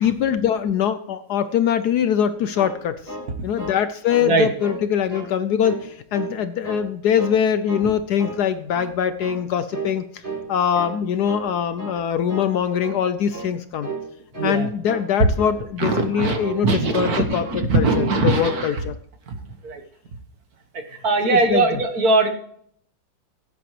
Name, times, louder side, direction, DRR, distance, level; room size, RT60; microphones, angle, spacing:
voice 1, 0.0-3.1 3.4-10.2 10.5-13.9 14.4-19.0 21.2-21.8, left 8 dB, 70° left, 11 dB, 1.0 m, -23 dB
sound 1, 2.5-3.8 4.1-4.3 4.6-5.3 5.6-6.4 6.6-7.4 7.7-7.9 8.2-8.9 9.2-9.4 9.7-10.0 10.2-11.0 11.2-11.5 11.8-12.0 12.3-12.5 12.8-13.0 13.3-13.5 13.8-14.1 14.3-14.6 14.8-15.1 15.4-15.6 15.9-16.1 16.4-17.2 17.4-17.6 17.9-18.2 18.4-18.7, right 3 dB, 30° right, 4.7 m, -33 dB
voice 2, 14.4-14.7 15.8-18.7 19.6-19.8 21.0-22.3, right 3 dB, 55° right, 6 dB, 1.7 m, -21 dB
17.0 x 8.9 x 3.1 m, 0.65 s
omnidirectional pair, 2.0 m